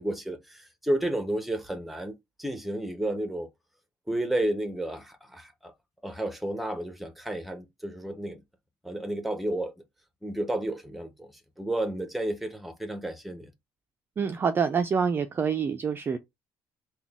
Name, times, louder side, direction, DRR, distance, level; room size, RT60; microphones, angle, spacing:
voice 1, 0.0-3.5 4.1-5.7 6.0-8.4 8.8-9.7 10.2-13.5, right 1 dB, ahead, 0.7 m, -32 dB
voice 2, 14.2-16.2, right 6 dB, 25° right, 0.4 m, -26 dB
3.8 x 2.2 x 3.5 m
cardioid pair, 130°, 8 cm